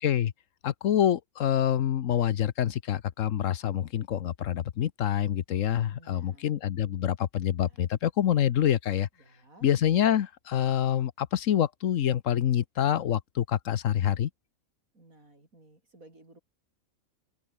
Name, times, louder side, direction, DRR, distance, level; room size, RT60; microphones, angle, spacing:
voice 1, 0.0-0.3 0.6-9.1 9.6-14.3, left 10 dB, 70° left, 1.2 m, -26 dB
voice 2, 5.9-6.5 6.8-7.1 7.4-7.8 9.2-9.7 14.9-16.4, right 2 dB, 80° right, 7.4 m, -57 dB
open air
omnidirectional pair, 1.4 m